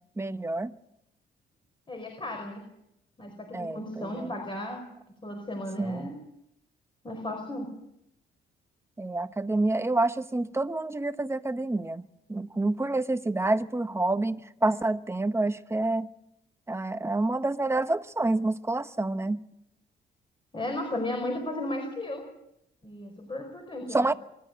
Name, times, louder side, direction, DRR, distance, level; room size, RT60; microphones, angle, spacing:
voice 1, 0.2-0.7 3.5-4.3 5.8-6.1 9.0-12.0 12.3-16.1 16.7-19.4 23.9-24.1, right 2 dB, 15° right, 1.1 m, -28 dB
voice 2, 1.9-2.7 3.2-4.9 5.2-6.2 7.0-7.8 20.5-22.3 22.8-24.0, left 1 dB, 25° left, 5.1 m, -35 dB
25.5 x 12.5 x 9.5 m
cardioid pair, 90°, 20 cm